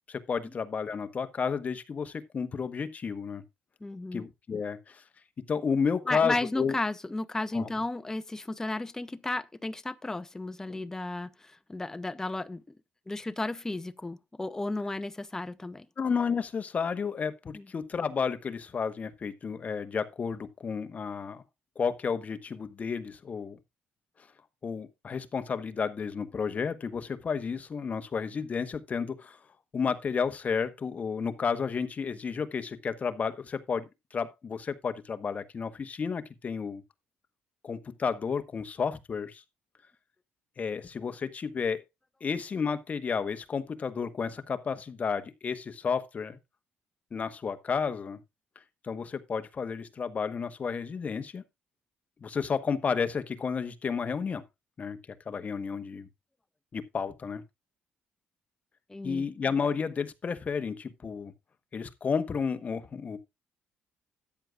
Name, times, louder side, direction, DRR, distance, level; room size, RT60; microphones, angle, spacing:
voice 1, 0.1-3.4 4.1-5.0 5.5-6.8 7.5-7.7 16.0-21.4 21.8-23.6 24.6-29.4 29.7-36.8 37.6-39.4 40.6-41.8 42.2-46.4 47.1-48.2 48.8-51.4 52.2-54.4 54.8-55.0 55.3-56.1 56.7-57.4 59.0-61.3 61.7-63.2, left 6 dB, 40° left, 1.1 m, -32 dB
voice 2, 3.8-4.2 6.1-12.6 13.1-15.9 17.5-17.6 58.9-59.3, left 2 dB, 15° left, 0.7 m, -34 dB
13.5 x 9.4 x 2.4 m
cardioid pair, 105°, 4 cm